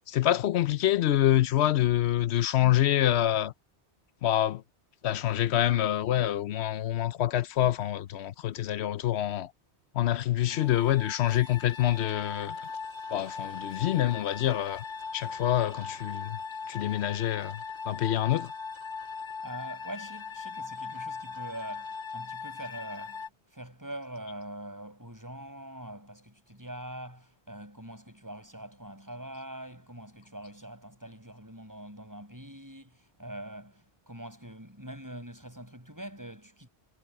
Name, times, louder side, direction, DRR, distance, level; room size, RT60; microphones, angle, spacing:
voice 1, 0.1-3.5 4.2-4.6 5.0-9.5 9.9-12.6 13.1-14.8 15.1-16.4 16.7-18.5, left 12 dB, 75° left, 0.9 m, -26 dB
sound 1, 10.5-23.3, left 5 dB, 25° left, 1.8 m, -39 dB
voice 2, 19.4-23.2 23.5-36.7, right 1 dB, 15° right, 6.0 m, -43 dB
omnidirectional pair, 1.1 m